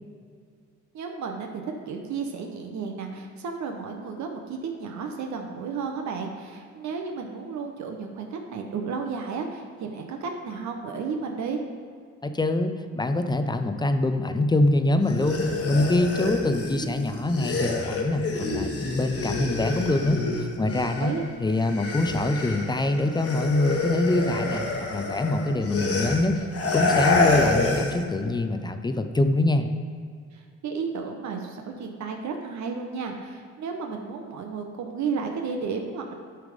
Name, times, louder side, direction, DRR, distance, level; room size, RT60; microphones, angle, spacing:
voice 1, 0.9-11.6 21.0-21.2 30.3-36.1, right 5 dB, 70° right, 3 dB, 0.8 m, -33 dB
voice 2, 12.2-21.1 21.4-26.4 26.7-29.7, left 2 dB, 15° left, 8 dB, 0.4 m, -24 dB
sound 1, 15.0-21.2 21.5-28.0, left 3 dB, 50° left, 1.2 m, -28 dB
9.8 x 3.5 x 5.0 m, 2.1 s
cardioid pair, 90°, 30 cm